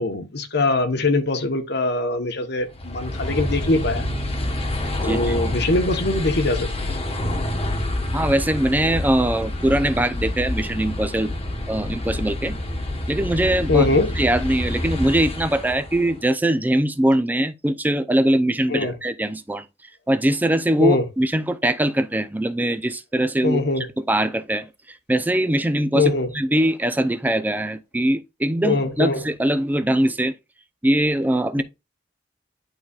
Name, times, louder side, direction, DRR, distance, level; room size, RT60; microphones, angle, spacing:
voice 1, 0.0-4.0 5.0-6.9 13.7-14.1 18.7-18.9 20.8-21.1 23.4-23.9 25.9-26.3 28.6-29.2, left 3 dB, 60° left, 1.0 m, -22 dB
sound 1, 2.7-16.2, left 1 dB, 30° left, 1.2 m, -27 dB
voice 2, 5.0-5.4 8.1-11.3 11.7-12.6 13.1-13.9 14.2-19.6 20.1-30.3 30.8-31.6, right 1 dB, 10° right, 0.5 m, -22 dB
11.0 x 3.9 x 2.4 m
head